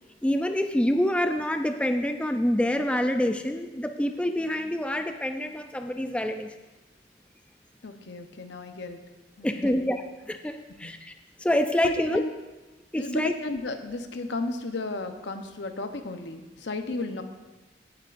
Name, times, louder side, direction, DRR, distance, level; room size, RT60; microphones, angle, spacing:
voice 1, 0.2-6.5 9.4-10.0 10.3-11.1 11.4-12.2 12.9-13.3, left 1 dB, 5° left, 6 dB, 0.4 m, -26 dB
voice 2, 7.8-9.0 9.4-9.8 10.8-10.9 11.8-12.3 12.9-17.2, left 2 dB, 70° left, 7 dB, 0.9 m, -34 dB
16.0 x 8.8 x 2.6 m, 1.1 s
head